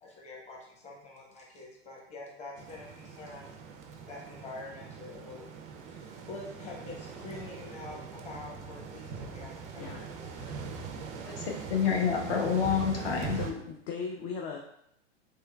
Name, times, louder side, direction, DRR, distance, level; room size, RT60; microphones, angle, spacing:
voice 1, 0.0-3.5 4.1-5.5 5.8-10.1, left 2 dB, 20° left, -3 dB, 0.9 m, -46 dB
sound 1, 2.5-13.5, right 5 dB, 25° right, 0.3 m, -41 dB
voice 2, 10.3-10.7 13.4-14.6, left 5 dB, 40° left, 1 dB, 0.4 m, -38 dB
voice 3, 11.3-13.4, left 7 dB, 60° left, 1 dB, 0.9 m, -28 dB
3.6 x 3.2 x 2.2 m, 0.75 s
hypercardioid pair, 115°, 33 cm